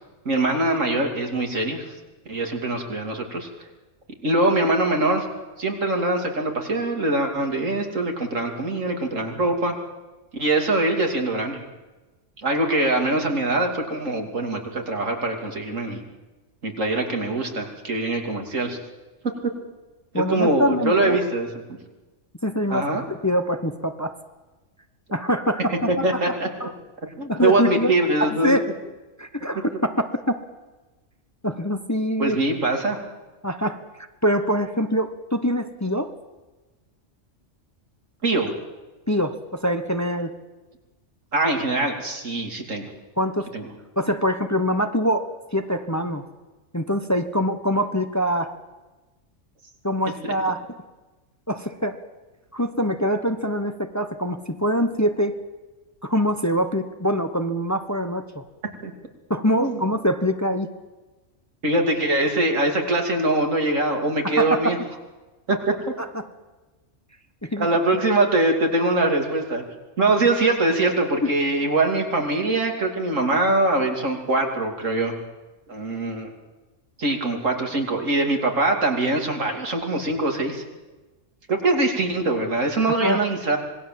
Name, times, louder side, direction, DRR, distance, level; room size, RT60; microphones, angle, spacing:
voice 1, 0.2-1.8 2.3-3.5 4.2-5.2 5.6-9.8 10.3-11.6 12.4-16.0 16.6-18.8 19.4-19.5 20.1-21.5 22.7-23.0 25.9-26.5 27.2-28.6 32.2-33.0 38.2-38.5 41.3-42.9 43.5-43.7 50.2-50.3 58.8-58.9 59.6-59.8 61.6-64.8 65.5-65.7 67.6-69.6 70.0-75.1 75.7-76.3 77.0-80.6 81.5-83.6, right 2 dB, 85° right, 2 dB, 3.3 m, -23 dB
voice 2, 20.1-21.2 22.4-24.1 25.1-26.3 26.6-26.7 27.3-27.9 28.2-28.7 29.2-30.4 31.4-32.4 33.4-33.8 34.2-36.1 39.1-40.3 43.2-43.5 44.0-46.2 46.7-48.5 49.8-50.7 51.5-52.0 52.5-55.3 56.0-58.4 59.3-60.7 64.2-64.7 66.1-66.2 67.4-67.7 71.2-71.3 83.0-83.2, equal, 15° left, 8 dB, 1.0 m, -24 dB
26.0 x 19.5 x 7.6 m, 1.2 s
omnidirectional pair, 1.3 m